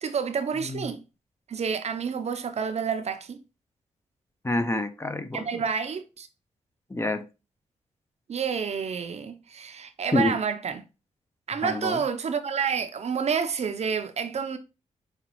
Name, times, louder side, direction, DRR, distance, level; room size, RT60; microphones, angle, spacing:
voice 1, 0.0-1.0 1.5-3.4 5.3-6.3 8.3-10.8 11.5-14.6, right 6 dB, 55° right, 0.5 m, -29 dB
voice 2, 4.4-5.5 6.9-7.2 10.1-10.4 11.6-12.0, left 2 dB, 20° left, 0.5 m, -27 dB
4.8 x 2.3 x 3.0 m
cardioid pair, 60°, 14 cm